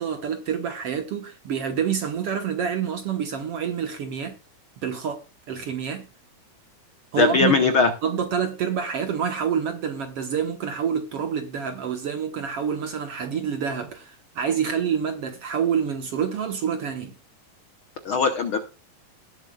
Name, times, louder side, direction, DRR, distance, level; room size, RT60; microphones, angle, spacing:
voice 1, 0.0-4.4 4.8-6.1 7.1-7.6 8.0-17.1, right 7 dB, 60° right, 1.7 m, -27 dB
voice 2, 7.2-7.9 18.0-18.6, left 4 dB, 70° left, 1.2 m, -20 dB
19.0 x 8.0 x 2.4 m
omnidirectional pair, 3.9 m